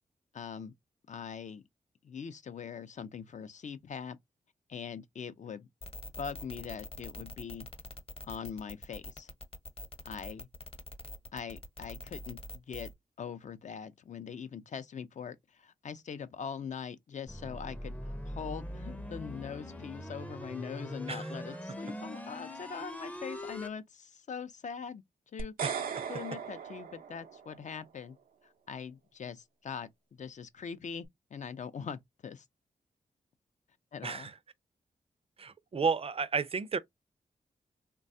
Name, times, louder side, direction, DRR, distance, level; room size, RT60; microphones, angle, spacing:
voice 1, 0.3-0.7 1.1-1.6 2.0-4.2 4.7-5.7 6.2-7.7 8.2-9.3 10.0-10.5 11.3-12.9 13.2-25.0 25.3-25.5 26.1-28.2 28.4-32.5 33.9-34.3, left 6 dB, 55° left, 0.5 m, -42 dB
sound 1, 5.8-12.9, left 2 dB, 40° left, 1.0 m, -44 dB
sound 2, 17.3-23.7, equal, 10° left, 0.5 m, -42 dB
sound 3, 25.4-27.7, right 7 dB, 90° right, 0.5 m, -38 dB
voice 2, 25.6-26.0 34.0-34.3 35.4-36.8, right 5 dB, 40° right, 0.5 m, -32 dB
3.2 x 2.3 x 2.6 m
cardioid pair, 55°, 15 cm